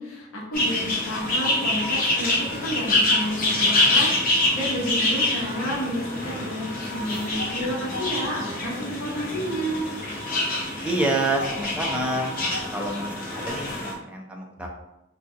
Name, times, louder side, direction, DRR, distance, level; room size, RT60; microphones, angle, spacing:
voice 1, 0.0-9.9, equal, 80° left, -4 dB, 0.9 m, -30 dB
sound 1, 0.5-13.9, left 2 dB, 40° left, 0.6 m, -26 dB
voice 2, 10.8-12.3 12.7-14.7, right 2 dB, 5° right, -1 dB, 0.4 m, -27 dB
3.6 x 2.3 x 2.7 m, 0.94 s
head